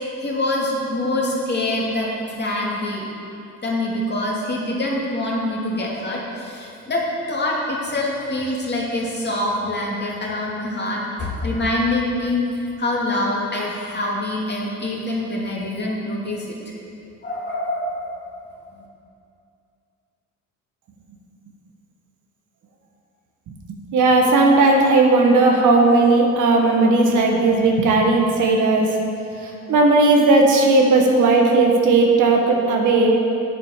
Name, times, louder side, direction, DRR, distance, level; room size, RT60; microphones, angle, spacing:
voice 1, 0.2-2.1 2.4-3.0 3.6-7.0 7.3-12.4 12.8-16.4 17.2-18.1, left 1 dB, 35° left, -4 dB, 2.7 m, -25 dB
voice 2, 23.9-28.9 29.4-33.2, right 3 dB, 80° right, 1 dB, 1.6 m, -16 dB
8.6 x 8.0 x 6.7 m, 2.6 s
cardioid pair, 90°, 30 cm